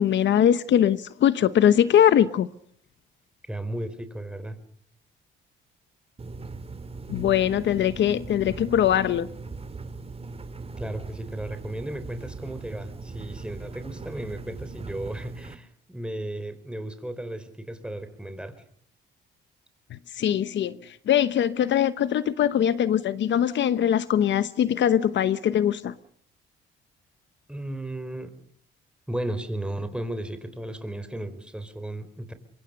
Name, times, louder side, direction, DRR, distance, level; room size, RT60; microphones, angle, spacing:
voice 1, 0.0-2.5 7.1-9.3 19.9-25.9, left 10 dB, 65° left, 1.0 m, -22 dB
voice 2, 3.5-4.6 10.8-18.6 27.5-28.3 29.1-32.3, right 1 dB, 5° right, 4.0 m, -35 dB
sound 1, 6.2-15.6, right 3 dB, 30° right, 2.3 m, -39 dB
25.0 x 22.5 x 6.6 m
cardioid pair, 90°, 20 cm